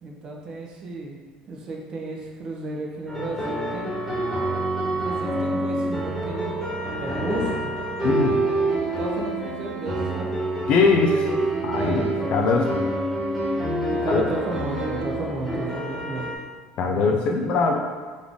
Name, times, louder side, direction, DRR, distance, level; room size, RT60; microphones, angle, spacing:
voice 1, 0.0-1.2 1.5-3.9 4.8-6.5 7.0-7.7 8.3-10.3 10.9-12.3 13.9-16.2 16.9-17.6, right 2 dB, 35° right, -1 dB, 0.6 m, -33 dB
sound 1, 3.1-16.3, right 1 dB, ahead, 1.3 m, -27 dB
voice 2, 8.0-8.4 10.7-11.2 11.6-12.8 14.1-14.2 16.8-17.8, left 4 dB, 45° left, 2 dB, 0.5 m, -22 dB
3.9 x 3.3 x 3.5 m, 1.5 s
cardioid pair, 165°, 2 cm